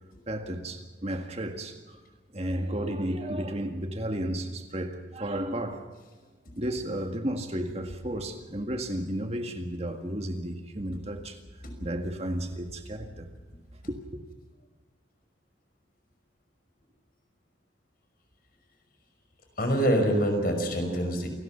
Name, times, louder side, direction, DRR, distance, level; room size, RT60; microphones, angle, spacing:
voice 1, 0.3-2.0 2.3-5.9 6.6-11.4 11.8-13.3 13.9-14.2, right 1 dB, 35° right, 1.9 m, -33 dB
voice 2, 19.6-21.3, equal, 50° left, 5.6 m, -25 dB
28.5 x 19.5 x 5.9 m
head